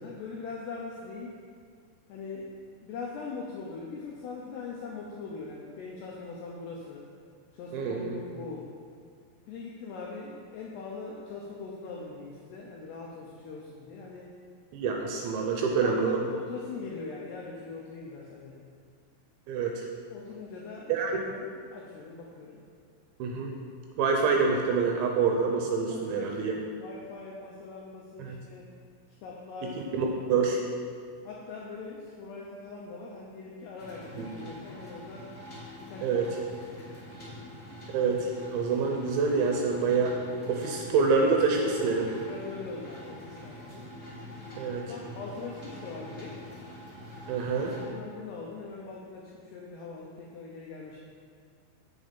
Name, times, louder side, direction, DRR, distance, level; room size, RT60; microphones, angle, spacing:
voice 1, 0.0-1.4 2.1-2.5 2.8-7.1 7.5-8.7 9.5-14.3 15.8-18.6 20.1-22.6 25.9-28.7 29.2-29.9 31.2-35.3 35.8-36.2 36.7-37.0 37.3-37.4 42.2-43.9 44.9-46.4 47.8-51.0, left 4 dB, 85° left, -2 dB, 2.4 m, -41 dB
voice 2, 7.7-8.2 14.7-16.2 19.5-19.8 20.9-21.2 23.2-23.5 24.0-26.5 28.2-28.4 29.6-30.6 34.1-34.3 36.0-36.3 37.9-40.2 40.5-42.1 44.6-44.9 47.3-47.8, right 4 dB, 80° right, 1 dB, 2.8 m, -27 dB
sound 1, 33.8-47.8, left 1 dB, 25° left, 1.3 m, -45 dB
7.7 x 7.6 x 5.4 m, 2.2 s
omnidirectional pair, 5.8 m